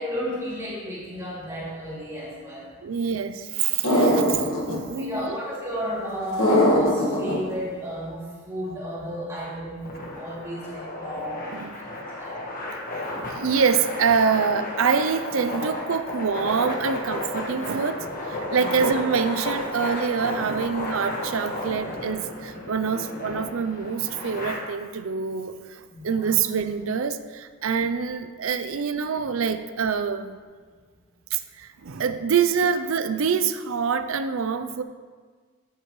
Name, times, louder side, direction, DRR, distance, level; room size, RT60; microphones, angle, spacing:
voice 1, 0.0-2.7 4.9-11.3 11.7-11.9 12.2-12.3 18.6-18.8 25.9-26.4, equal, 15° right, -8 dB, 2.7 m, -33 dB
voice 2, 2.8-5.4 11.5-11.8 13.3-30.4 31.3-34.8, right 6 dB, 65° right, 11 dB, 0.5 m, -26 dB
sound 1, 3.8-4.8 6.4-7.3, equal, 65° left, 1.7 m, -20 dB
sound 2, 9.8-24.5, left 1 dB, 40° left, 1.4 m, -33 dB
9.5 x 8.2 x 3.1 m, 1.5 s
head